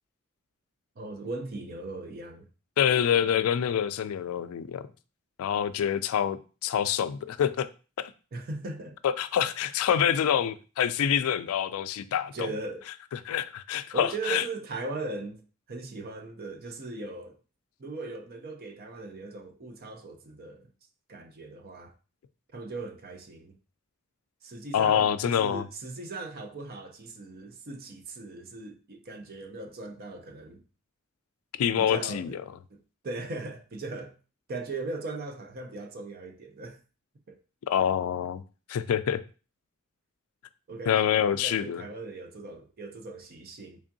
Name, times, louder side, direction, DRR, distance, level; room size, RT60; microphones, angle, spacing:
voice 1, 1.0-2.5 8.3-9.0 12.3-12.8 13.9-15.4 15.7-17.3 17.8-20.7 21.1-21.9 22.5-23.6 24.4-30.6 31.8-32.4 32.7-32.8 33.0-34.2 34.5-36.8 37.3-37.4 40.7-41.0 41.3-43.8, right 3 dB, 45° right, 0.5 m, -38 dB
voice 2, 2.8-4.9 5.4-7.7 8.0-8.1 9.0-12.5 13.1-14.4 24.7-25.6 31.6-32.4 37.7-38.4 38.7-39.2 40.9-41.8, left 9 dB, 75° left, 0.3 m, -26 dB
3.5 x 3.4 x 2.6 m
head